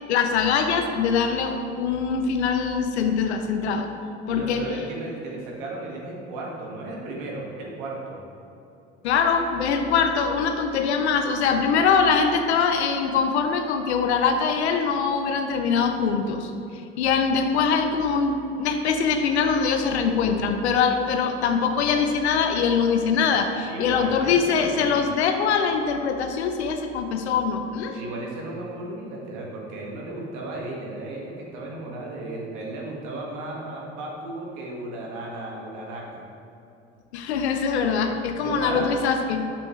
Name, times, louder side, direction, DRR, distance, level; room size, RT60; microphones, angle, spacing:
voice 1, 0.1-3.9 4.3-4.6 9.0-16.5 17.0-28.0 37.1-39.4, left 6 dB, 85° left, 6 dB, 0.7 m, -23 dB
voice 2, 4.3-8.2 23.6-25.0 27.9-36.3 38.4-39.0, right 2 dB, 70° right, -2 dB, 1.8 m, -35 dB
8.3 x 7.0 x 3.2 m, 2.7 s
hypercardioid pair, 65°, 32 cm